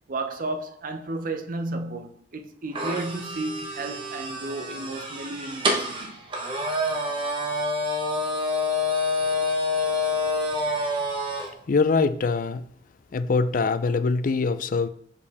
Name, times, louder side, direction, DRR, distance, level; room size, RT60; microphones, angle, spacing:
voice 1, 0.1-6.2, right 2 dB, 50° right, 0.6 m, -33 dB
sound 1, 2.7-11.5, left 2 dB, 30° right, 1.1 m, -27 dB
voice 2, 11.7-12.6 13.1-14.9, left 4 dB, 50° left, 0.4 m, -23 dB
6.6 x 4.9 x 3.5 m
head